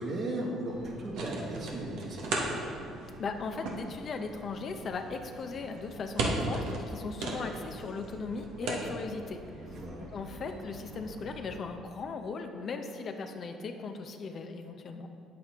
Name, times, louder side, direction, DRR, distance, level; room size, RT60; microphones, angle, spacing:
voice 1, 0.0-2.5 9.7-10.1, right 1 dB, 55° right, -3 dB, 2.1 m, -36 dB
sound 1, 0.7-11.6, right 2 dB, 75° right, 1.2 m, -38 dB
voice 2, 3.2-9.4 10.1-15.1, left 4 dB, 50° left, 5 dB, 0.7 m, -38 dB
8.6 x 7.6 x 3.6 m, 2.6 s
supercardioid pair, 75°, 0 cm